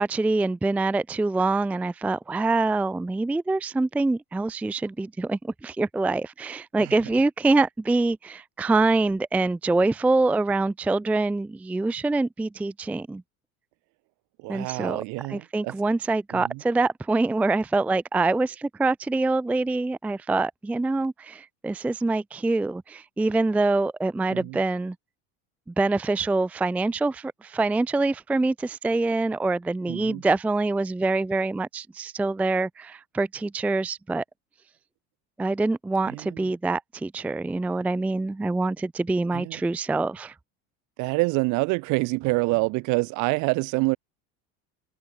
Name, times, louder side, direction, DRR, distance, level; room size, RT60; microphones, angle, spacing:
voice 1, 0.0-13.2 14.5-15.0 15.3-25.0 25.7-34.2 35.4-40.3, right 3 dB, 5° right, 0.4 m, -25 dB
voice 2, 14.4-15.7 16.3-16.6 24.3-24.6 29.9-30.2 36.1-36.4 39.3-39.6 41.0-44.0, right 26 dB, 60° right, 3.5 m, -26 dB
cardioid pair, 165°, 32 cm